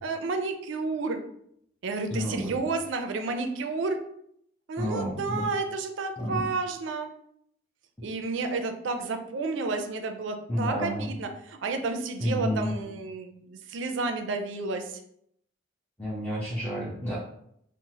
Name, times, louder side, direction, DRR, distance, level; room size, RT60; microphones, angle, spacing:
voice 1, 0.0-1.2 1.8-4.0 4.7-7.1 8.0-15.0, right 3 dB, 70° right, 6 dB, 0.4 m, -31 dB
voice 2, 2.1-2.5 4.8-5.5 6.2-6.4 10.5-11.1 12.2-12.7 16.0-17.2, equal, 10° left, -8 dB, 0.5 m, -30 dB
3.0 x 2.0 x 2.7 m, 0.71 s
head